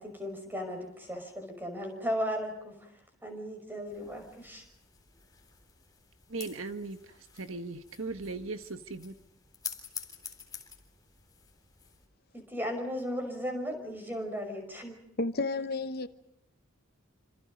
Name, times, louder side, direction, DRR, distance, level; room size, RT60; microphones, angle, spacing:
voice 1, 0.0-2.9 3.2-4.7 12.3-14.9, equal, 10° right, 5.8 m, -36 dB
sound 1, 3.9-12.1, left 7 dB, 20° left, 3.6 m, -48 dB
voice 2, 6.3-9.1, right 3 dB, 70° right, 1.5 m, -38 dB
voice 3, 15.2-16.1, left 3 dB, 45° left, 1.0 m, -31 dB
28.5 x 26.0 x 5.2 m
head